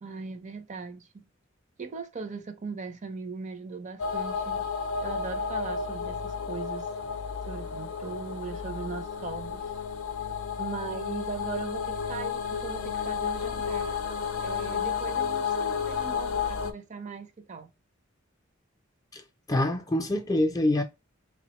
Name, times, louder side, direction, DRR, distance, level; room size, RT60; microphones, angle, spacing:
voice 1, 0.0-1.3 1.8-4.7 5.0-6.9 7.5-9.6 10.6-14.0 14.4-17.7, right 5 dB, 35° right, 0.5 m, -39 dB
sound 1, 4.0-16.7, left 6 dB, 80° left, 0.5 m, -32 dB
voice 2, 19.5-20.8, left 1 dB, 20° left, 0.4 m, -25 dB
3.4 x 2.1 x 2.8 m
head